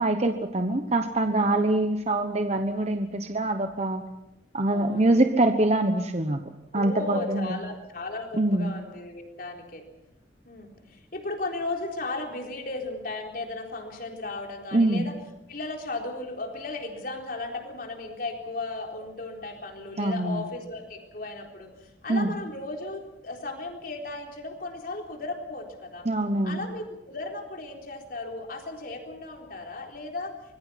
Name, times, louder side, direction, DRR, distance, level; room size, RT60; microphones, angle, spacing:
voice 1, 0.0-4.0 4.5-6.4 6.7-7.6 8.3-8.7 14.7-15.1 20.0-20.5 22.1-22.3 26.0-26.6, right 2 dB, 35° right, 6 dB, 1.1 m, -24 dB
voice 2, 1.4-1.8 4.7-5.2 6.7-9.8 10.5-15.1 15.5-21.7 22.0-26.1 26.4-30.3, left 2 dB, 50° left, 2 dB, 4.0 m, -35 dB
25.0 x 21.5 x 5.9 m, 0.91 s
head